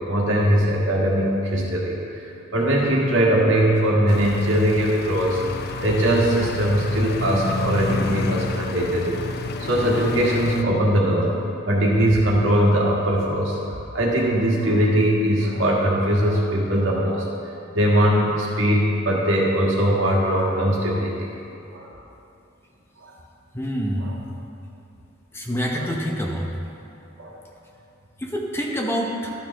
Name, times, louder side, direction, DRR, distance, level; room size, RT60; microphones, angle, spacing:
voice 1, 0.1-2.2 2.5-5.4 5.8-9.2 9.6-11.3 11.7-13.6 13.9-17.2 17.7-21.3 21.7-21.9 24.0-24.1 25.7-25.8 27.2-27.4, equal, 80° right, -3 dB, 1.7 m, -20 dB
sound 1, 4.1-10.6, left 3 dB, 50° left, 0.4 m, -30 dB
voice 2, 23.5-24.2 25.3-26.5 28.2-29.3, equal, 10° left, -1 dB, 0.8 m, -26 dB
12.0 x 7.1 x 3.4 m, 2.7 s
head